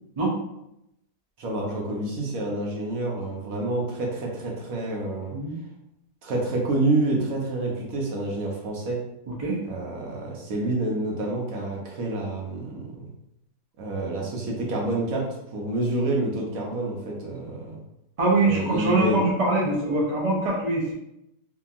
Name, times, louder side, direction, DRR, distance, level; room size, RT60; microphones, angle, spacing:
voice 1, 1.4-5.3 6.2-9.0 9.7-12.8 13.8-15.2 15.5-17.8 18.4-19.2, right 2 dB, 65° right, -2 dB, 1.0 m, -28 dB
voice 2, 18.2-20.9, right 2 dB, 50° right, -4 dB, 0.4 m, -23 dB
2.8 x 2.6 x 2.4 m, 0.83 s
omnidirectional pair, 1.7 m